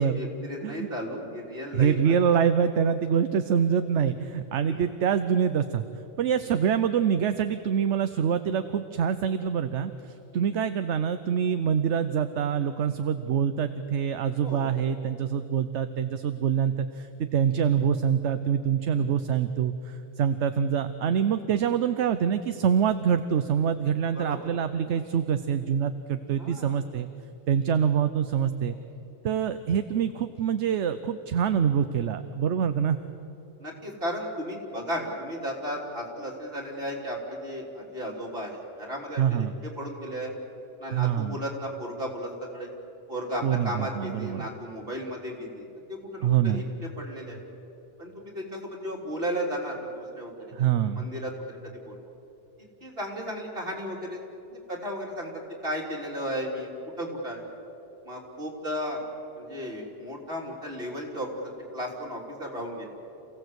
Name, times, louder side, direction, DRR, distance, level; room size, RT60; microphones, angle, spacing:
voice 1, 0.0-2.2 4.7-4.9 10.3-10.5 14.4-14.7 18.9-19.1 24.2-24.4 26.4-26.7 33.6-39.5 39.8-40.3 40.8-42.7 43.1-46.6 47.0-47.4 48.0-50.3 50.8-51.3 51.9-52.0 52.6-54.2 54.5-55.3 55.6-56.7 57.0-57.5 58.1-59.0 59.4-62.9, equal, 50° right, -1 dB, 3.7 m, -34 dB
voice 2, 1.7-5.8 6.2-27.1 27.5-28.8 29.2-33.0 39.2-39.5 40.9-41.4 43.4-44.4 46.2-46.7 50.5-51.1, right 8 dB, 70° right, 10 dB, 1.0 m, -25 dB
28.0 x 16.5 x 8.1 m, 2.9 s
omnidirectional pair, 1.2 m